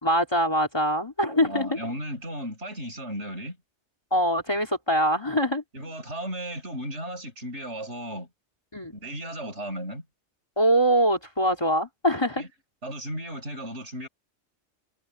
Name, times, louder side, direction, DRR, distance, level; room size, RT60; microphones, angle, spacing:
voice 1, 0.0-1.8 4.1-5.6 8.7-9.0 10.6-12.4, equal, 20° left, 2.8 m, -23 dB
voice 2, 1.4-3.6 5.7-8.3 8.9-10.0 12.4-12.5 12.8-14.1, equal, 85° right, 8.2 m, -35 dB
omnidirectional pair, 1.1 m